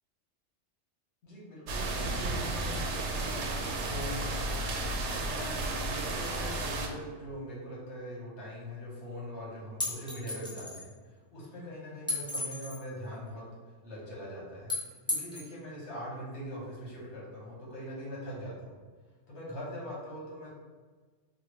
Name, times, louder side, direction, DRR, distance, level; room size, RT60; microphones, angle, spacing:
voice 1, 1.2-4.5 5.1-18.8 19.3-20.5, equal, 70° left, -6 dB, 1.4 m, -42 dB
sound 1, 1.7-6.9, right 2 dB, 75° right, 0.9 m, -33 dB
sound 2, 9.8-10.8 12.1-12.8 14.7-15.5, left 2 dB, 5° left, 0.7 m, -34 dB
4.3 x 2.2 x 3.0 m, 1.4 s
omnidirectional pair, 1.2 m